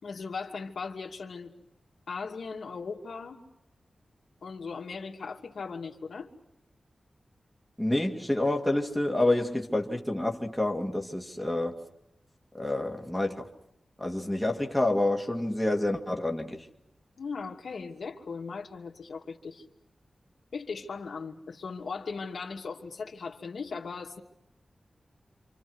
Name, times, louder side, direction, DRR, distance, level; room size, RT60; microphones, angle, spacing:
voice 1, 0.0-1.5 2.1-3.4 4.4-6.3 17.2-19.6 20.5-24.2, left 5 dB, 80° left, 2.6 m, -38 dB
voice 2, 7.8-11.7 12.5-13.5 14.0-16.7, left 1 dB, 5° left, 2.1 m, -28 dB
28.0 x 27.0 x 6.3 m
wide cardioid pair, 140°, 0 cm